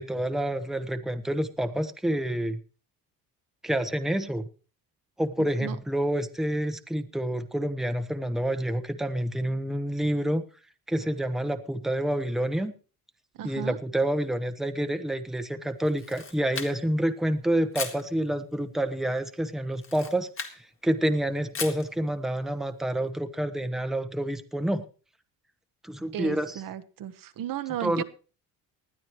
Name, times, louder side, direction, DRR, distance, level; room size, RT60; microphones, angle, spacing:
voice 1, 0.0-2.6 3.6-4.4 5.2-10.4 10.9-12.7 13.4-20.3 20.5-24.9 25.8-26.6 27.8-28.0, right 1 dB, ahead, 8 dB, 1.0 m, -28 dB
voice 2, 5.4-5.8 13.4-13.8 26.1-28.0, right 11 dB, 65° right, 9 dB, 1.2 m, -34 dB
Camera, 15.9-17.0 17.7-18.1 19.7-20.6 21.5-21.9, left 5 dB, 35° left, 2.1 m, -36 dB
20.0 x 12.0 x 3.1 m, 0.38 s
cardioid pair, 115°, 36 cm